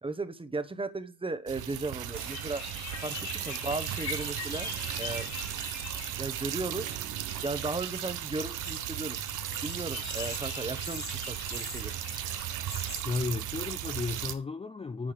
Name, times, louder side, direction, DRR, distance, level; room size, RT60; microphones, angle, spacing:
voice 1, 0.0-2.6 3.0-4.7 5.0-5.3 6.1-6.9 7.4-9.2 9.6-11.9, right 3 dB, 15° right, 1.1 m, -36 dB
sound 1, 1.5-14.3, right 12 dB, 85° right, 1.0 m, -36 dB
sound 2, 2.1-13.0, left 5 dB, 60° left, 3.1 m, -43 dB
voice 2, 13.0-15.1, left 4 dB, 20° left, 0.6 m, -33 dB
10.0 x 5.6 x 5.1 m
cardioid pair, 90°, 30 cm